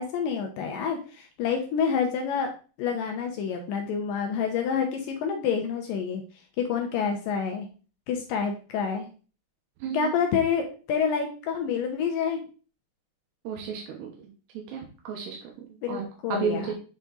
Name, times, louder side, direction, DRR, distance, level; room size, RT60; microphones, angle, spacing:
voice 1, 0.0-2.5 2.8-6.2 6.6-7.7 8.1-9.1 9.9-12.4 15.8-16.7, left 6 dB, 80° left, 3 dB, 2.0 m, -28 dB
voice 2, 9.8-10.2 13.4-14.1 14.7-15.5 15.9-16.0 16.3-16.7, right 6 dB, 85° right, 0 dB, 3.2 m, -32 dB
8.0 x 3.7 x 3.9 m, 0.36 s
omnidirectional pair, 4.8 m